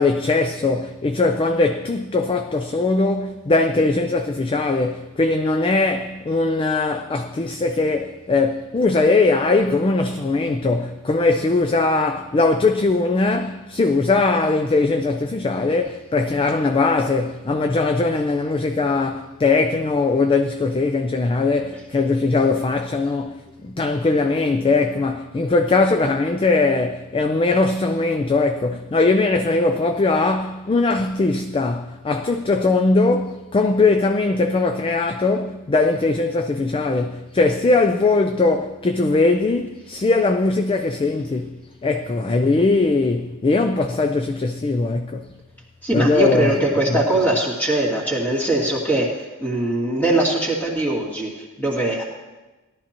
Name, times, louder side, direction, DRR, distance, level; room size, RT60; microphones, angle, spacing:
voice 1, 0.0-45.4 45.9-46.6 46.9-47.0, left 3 dB, 25° left, 0.4 m, -20 dB
voice 2, 45.8-52.0, right 1 dB, 10° left, 2.3 m, -21 dB
17.5 x 12.0 x 2.9 m
head